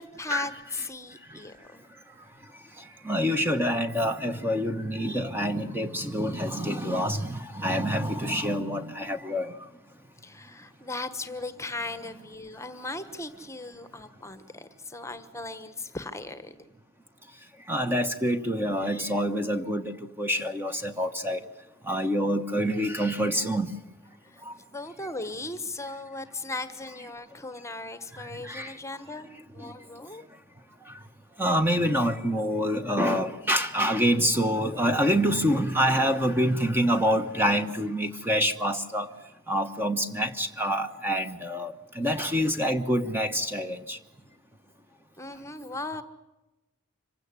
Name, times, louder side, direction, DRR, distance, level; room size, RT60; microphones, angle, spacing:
voice 1, 0.0-1.9 10.2-16.7 24.2-30.2 45.2-46.0, left 2 dB, 15° left, 12 dB, 1.2 m, -38 dB
voice 2, 3.1-9.5 17.7-19.8 20.2-21.4 21.9-23.7 28.5-28.7 31.4-39.1 39.5-44.0, equal, 10° right, 7 dB, 1.2 m, -26 dB
25.5 x 16.5 x 9.8 m, 1.0 s
head